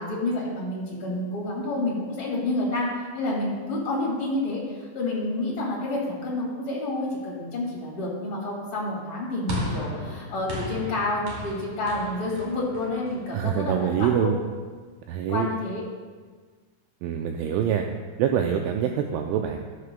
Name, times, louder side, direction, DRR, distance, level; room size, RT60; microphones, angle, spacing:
voice 1, 0.0-2.9 3.1-14.3 15.3-15.8, left 2 dB, 50° left, -5 dB, 1.6 m, -29 dB
sound 1, 9.5-13.9, equal, 45° right, 2.6 m, -35 dB
voice 2, 13.3-14.4 15.1-15.5 17.0-17.9 18.2-19.6, right 8 dB, 85° right, 4 dB, 2.7 m, -25 dB
13.5 x 11.0 x 2.3 m, 1.5 s
omnidirectional pair, 6.0 m